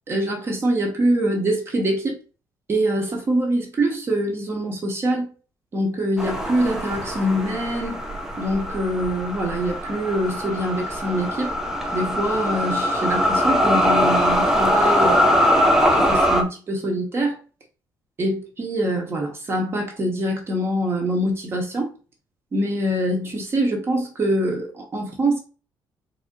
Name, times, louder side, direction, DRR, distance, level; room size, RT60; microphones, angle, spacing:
voice 1, 0.1-2.2 2.7-5.3 5.7-8.0 8.4-11.5 11.9-17.4 18.2-21.9 22.5-25.4, right 1 dB, 30° right, 1.2 m, -24 dB
sound 1, 6.2-16.4, equal, 5° right, 0.6 m, -21 dB
4.1 x 2.8 x 3.8 m
cardioid pair, 160°, 8 cm